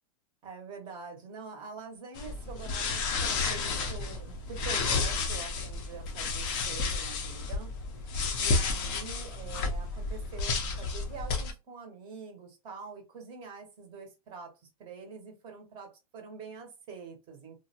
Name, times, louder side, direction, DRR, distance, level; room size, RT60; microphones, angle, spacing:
voice 1, 0.4-7.7 8.4-14.5 14.8-17.6, right 5 dB, 25° right, 0.6 m, -45 dB
sound 1, 2.2-11.5, left 4 dB, 20° left, 0.4 m, -31 dB
2.5 x 2.0 x 2.7 m
hypercardioid pair, 155°, 20 cm